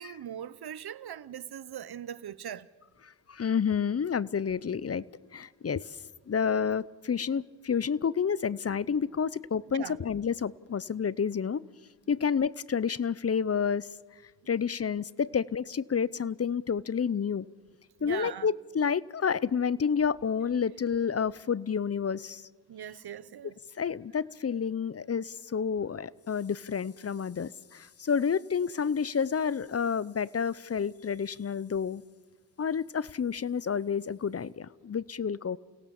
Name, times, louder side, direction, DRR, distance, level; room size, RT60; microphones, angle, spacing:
voice 1, 0.0-2.7 9.7-10.0 18.0-18.5 22.7-23.5, right 9 dB, 70° right, 0.9 m, -40 dB
voice 2, 3.0-5.0 5.3-6.0 6.3-11.6 12.1-13.9 14.5-17.5 18.0-22.5 23.8-32.0 32.6-35.6, left 6 dB, 35° left, 0.7 m, -29 dB
29.0 x 17.5 x 7.1 m
cardioid pair, 60°, 40 cm